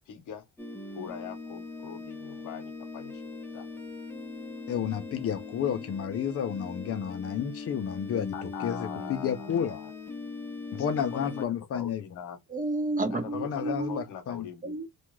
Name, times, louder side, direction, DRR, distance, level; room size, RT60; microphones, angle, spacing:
voice 1, 0.1-0.4 0.9-3.7 8.3-9.9 10.7-10.9 11.1-12.4 13.1-14.8, left 9 dB, 90° left, 0.9 m, -42 dB
sound 1, 0.6-11.5, left 3 dB, 5° left, 0.7 m, -40 dB
voice 2, 4.7-9.8 10.7-12.0 13.4-14.5, left 8 dB, 50° left, 0.5 m, -31 dB
voice 3, 12.5-14.0 14.6-14.9, right 2 dB, 25° right, 0.8 m, -31 dB
2.4 x 2.2 x 2.9 m
cardioid pair, 90°, 30 cm